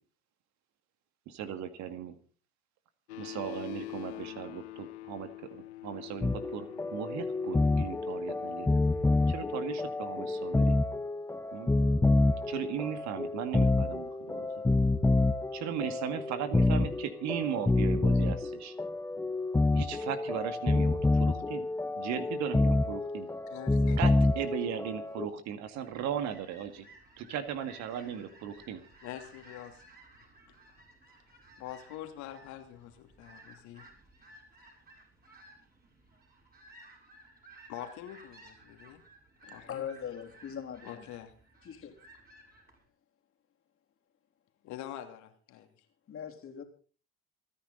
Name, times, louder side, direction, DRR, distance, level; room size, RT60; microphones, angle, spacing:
voice 1, 1.3-2.2 3.2-8.8 9.3-10.8 11.5-11.7 12.5-14.6 15.5-18.7 19.7-21.7 22.0-23.3 24.0-26.9 27.2-28.8, right 9 dB, 55° right, 2.0 m, -37 dB
sound 1, 3.1-10.7, left 16 dB, 80° left, 0.8 m, -45 dB
sound 2, 6.2-25.3, left 2 dB, 10° left, 0.7 m, -28 dB
voice 2, 23.5-24.0 29.0-29.8 30.5-30.6 31.6-33.8 37.7-39.0 39.5-39.9 40.8-41.3 44.6-45.7, left 12 dB, 60° left, 2.8 m, -45 dB
sound 3, 25.7-42.8, right 1 dB, 30° right, 6.8 m, -57 dB
voice 3, 39.4-41.1 41.6-41.9 46.1-46.6, left 8 dB, 40° left, 3.4 m, -41 dB
28.0 x 10.0 x 4.0 m
hypercardioid pair, 60°, 33 cm